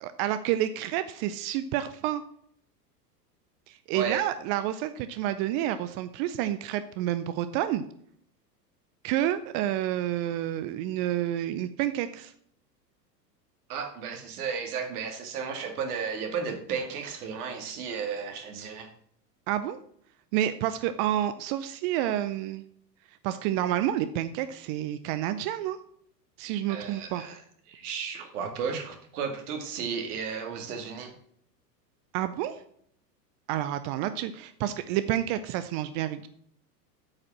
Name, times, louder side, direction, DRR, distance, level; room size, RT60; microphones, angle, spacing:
voice 1, 0.0-2.2 3.7-7.9 9.0-12.3 19.5-19.8 20.3-22.6 23.2-25.8 26.4-27.2 32.1-32.6 33.5-36.3, right 12 dB, 35° right, 11 dB, 0.4 m, -29 dB
voice 2, 3.9-4.2 13.7-18.9 26.7-27.4 27.7-31.1, right 6 dB, 60° right, 5 dB, 2.1 m, -34 dB
8.4 x 5.0 x 6.1 m, 0.66 s
hypercardioid pair, 95°, 50 cm